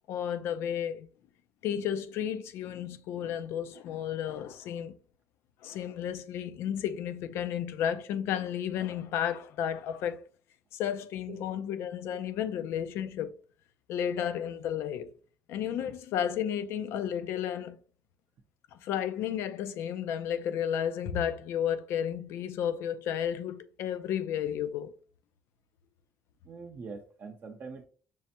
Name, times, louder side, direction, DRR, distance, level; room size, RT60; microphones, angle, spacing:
voice 1, 0.1-1.1 1.6-4.9 5.6-10.2 10.7-13.3 13.9-15.1 15.5-17.8 18.7-24.9, left 9 dB, 80° left, 0.4 m, -32 dB
voice 2, 26.4-27.8, right 4 dB, 50° right, 0.6 m, -43 dB
6.1 x 2.1 x 2.8 m
cardioid pair, 110°, 4 cm